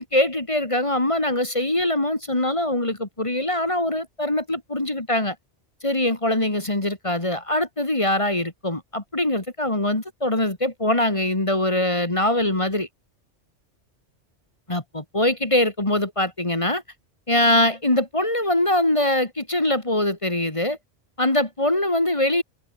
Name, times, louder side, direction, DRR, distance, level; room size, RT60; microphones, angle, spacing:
voice 1, 0.0-5.4 5.8-12.9 14.7-16.8 17.3-20.8 21.2-22.4, left 1 dB, 25° left, 2.3 m, -23 dB
omnidirectional pair, 1.2 m